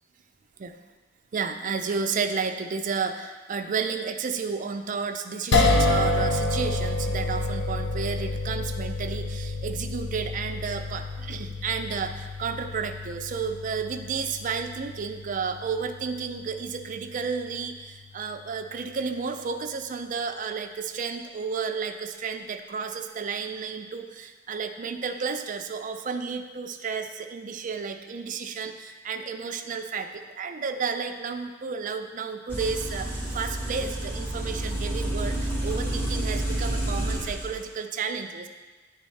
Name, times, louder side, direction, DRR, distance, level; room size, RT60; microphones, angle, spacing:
voice 1, 1.3-38.5, right 5 dB, 45° right, 6 dB, 0.4 m, -32 dB
sound 1, 5.5-17.8, left 2 dB, 65° left, 0.5 m, -29 dB
sound 2, 32.5-37.5, right 1 dB, 10° left, 1.1 m, -29 dB
9.9 x 3.5 x 3.2 m, 1.3 s
head